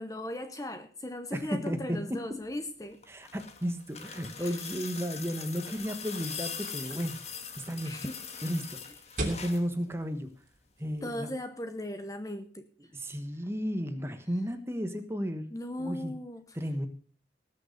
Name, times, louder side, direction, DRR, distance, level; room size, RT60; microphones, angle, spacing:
voice 1, 0.0-3.0 4.4-4.6 7.8-8.2 11.0-12.7 15.5-16.5, left 1 dB, 20° left, 8 dB, 0.8 m, -37 dB
voice 2, 1.3-2.2 3.1-7.1 7.7-7.9 8.4-8.6 9.2-10.3 10.8-11.3 12.9-15.5 15.8-16.1 16.5-16.9, equal, 15° right, 8 dB, 1.3 m, -33 dB
sound 1, 2.9-9.7 11.0-11.1, left 6 dB, 35° left, 1.6 m, -42 dB
sound 2, 5.7-11.1, right 1 dB, 45° right, 3.0 m, -42 dB
19.0 x 6.5 x 6.7 m, 0.43 s
head